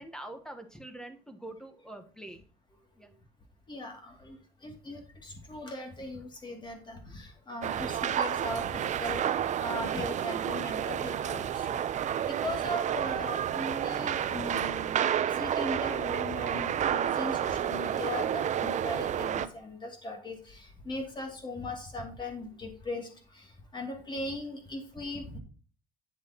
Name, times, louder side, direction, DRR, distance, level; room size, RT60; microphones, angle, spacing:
voice 1, 0.0-2.4 3.0-3.1, right 1 dB, 5° left, 6 dB, 1.2 m, -44 dB
voice 2, 3.7-9.2 9.6-11.8 12.3-25.4, left 1 dB, 25° left, 3 dB, 2.4 m, -39 dB
sound 1, 7.6-19.5, right 9 dB, 45° right, 0.6 m, -30 dB
8.8 x 7.2 x 2.9 m, 0.41 s
cardioid pair, 110°, 17 cm